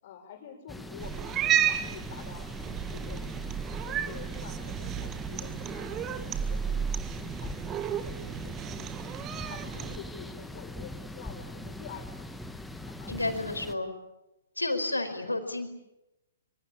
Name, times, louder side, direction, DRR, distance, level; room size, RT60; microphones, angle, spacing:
voice 1, 0.0-7.6 8.0-13.4 15.2-15.4, left 6 dB, 45° left, 6 dB, 6.5 m, -48 dB
sound 1, 0.7-13.8, left 1 dB, 5° left, 1.8 m, -42 dB
Cat, 1.0-10.0, right 9 dB, 20° right, 1.6 m, -32 dB
voice 2, 13.1-13.9 14.6-15.7, left 2 dB, 85° left, 7 dB, 4.8 m, -31 dB
25.5 x 24.5 x 8.6 m, 0.94 s
figure-of-eight pair, 120°, 0 cm